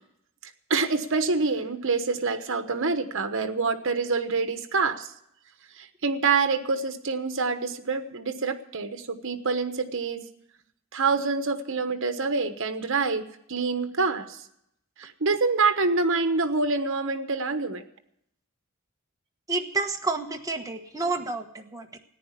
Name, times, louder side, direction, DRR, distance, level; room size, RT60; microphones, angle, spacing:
voice 1, 0.7-5.1 5.8-10.2 10.9-14.4 15.0-17.8, right 4 dB, 65° right, 8 dB, 1.2 m, -26 dB
voice 2, 19.5-22.0, right 3 dB, 15° right, 3 dB, 1.2 m, -30 dB
14.5 x 10.0 x 8.2 m, 0.74 s
head